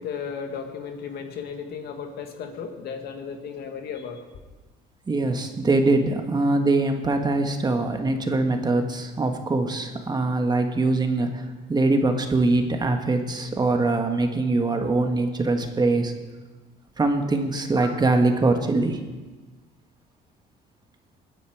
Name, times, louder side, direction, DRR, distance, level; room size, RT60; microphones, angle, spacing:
voice 1, 0.0-4.2, left 6 dB, 70° left, 5 dB, 1.8 m, -35 dB
voice 2, 5.1-16.1 17.0-19.0, right 2 dB, 25° right, 5 dB, 1.5 m, -23 dB
21.0 x 9.8 x 4.7 m, 1.3 s
cardioid pair, 110°, 17 cm